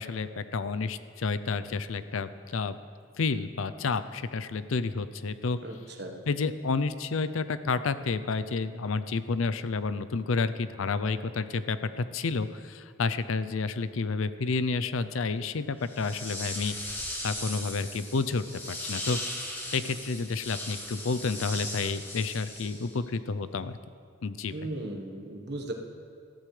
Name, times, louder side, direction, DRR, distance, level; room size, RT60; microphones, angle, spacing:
voice 1, 0.0-2.8 3.2-5.6 6.3-17.0 17.2-19.2 19.7-23.8 24.2-24.5, left 4 dB, 80° left, 13 dB, 0.5 m, -30 dB
voice 2, 5.6-6.2 24.5-25.7, right 1 dB, 55° right, 2 dB, 1.4 m, -37 dB
sound 1, 15.8-23.1, left 1 dB, 10° left, 1.3 m, -38 dB
20.0 x 14.0 x 3.3 m, 2.3 s
head